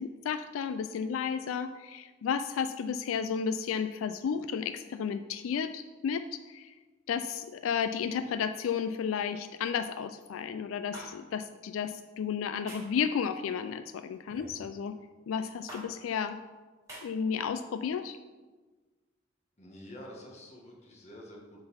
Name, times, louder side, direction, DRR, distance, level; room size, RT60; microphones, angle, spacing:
voice 1, 0.0-6.7 7.1-15.0 15.3-16.4 17.0-18.2, left 7 dB, 90° left, 11 dB, 0.3 m, -33 dB
sound 1, 10.9-11.1 12.7-13.0 14.3-14.6 15.7-15.8 16.9-17.0, right 1 dB, 15° right, 2.3 m, -44 dB
voice 2, 19.6-21.6, equal, 35° left, -1 dB, 1.5 m, -48 dB
7.6 x 4.0 x 5.6 m, 1.3 s
head